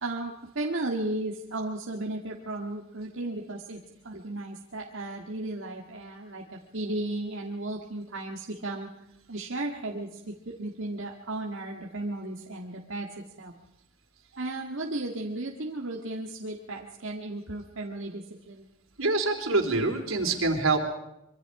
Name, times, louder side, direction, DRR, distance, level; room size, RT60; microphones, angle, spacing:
voice 1, 0.0-3.8 4.0-8.9 9.3-13.1 13.4-13.5 14.4-18.7, right 2 dB, 65° right, 0 dB, 2.0 m, -35 dB
voice 2, 19.0-20.8, right 3 dB, 80° right, 4 dB, 3.9 m, -25 dB
25.5 x 24.5 x 4.9 m, 0.84 s
head